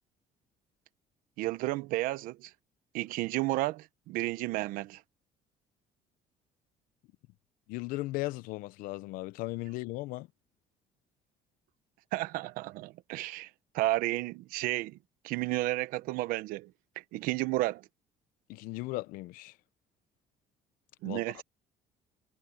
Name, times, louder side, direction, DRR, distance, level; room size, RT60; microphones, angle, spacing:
voice 1, 1.4-2.5 2.9-5.0 12.1-13.5 13.7-15.0 15.2-16.7 17.1-17.9 21.0-21.4, right 18 dB, 85° right, 0.9 m, -32 dB
voice 2, 7.7-10.3 18.5-19.6 21.0-21.2, left 20 dB, 85° left, 0.8 m, -37 dB
cardioid pair, 140°, 14 cm